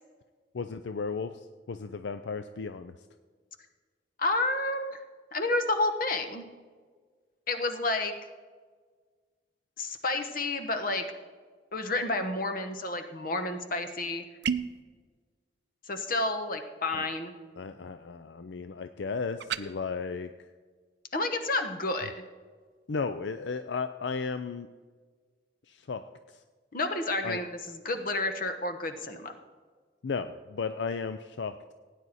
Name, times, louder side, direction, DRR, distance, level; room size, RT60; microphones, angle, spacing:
voice 1, 0.5-2.9 16.9-17.1 17.6-20.5 22.9-24.7 25.7-26.4 27.2-27.4 30.0-31.7, left 4 dB, 75° left, 10 dB, 0.5 m, -35 dB
voice 2, 4.2-5.0 5.3-6.5 7.5-8.1 9.8-11.0 11.7-14.2 15.9-17.3 21.1-22.1 26.7-29.3, left 2 dB, 50° left, 7 dB, 1.2 m, -30 dB
sound 1, 14.4-14.8 19.4-19.7, right 6 dB, 65° right, 0.5 m, -30 dB
17.0 x 9.4 x 4.2 m, 1.5 s
head